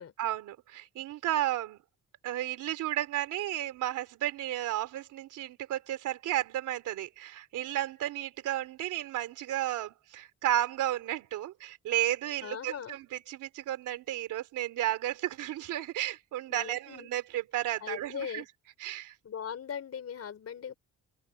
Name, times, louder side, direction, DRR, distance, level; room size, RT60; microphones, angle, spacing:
voice 1, 0.2-1.8 2.2-18.4 18.8-19.1, right 13 dB, 85° right, 3.4 m, -33 dB
voice 2, 12.4-13.0 16.5-17.1 17.8-18.5 19.2-20.7, left 8 dB, 55° left, 4.7 m, -39 dB
open air
cardioid pair, 90°, 30 cm